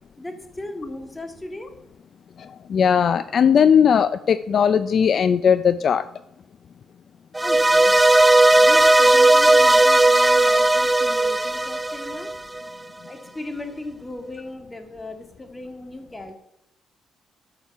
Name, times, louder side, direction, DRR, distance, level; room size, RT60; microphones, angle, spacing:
voice 1, 0.2-1.7 7.4-12.3 13.1-16.4, left 2 dB, 15° left, 6 dB, 2.1 m, -37 dB
voice 2, 2.4-6.0, left 7 dB, 55° left, 13 dB, 0.5 m, -18 dB
sound 1, 7.3-12.6, right 2 dB, 10° right, 0.5 m, -16 dB
13.5 x 6.8 x 5.6 m, 0.85 s
cardioid pair, 90°, 0 cm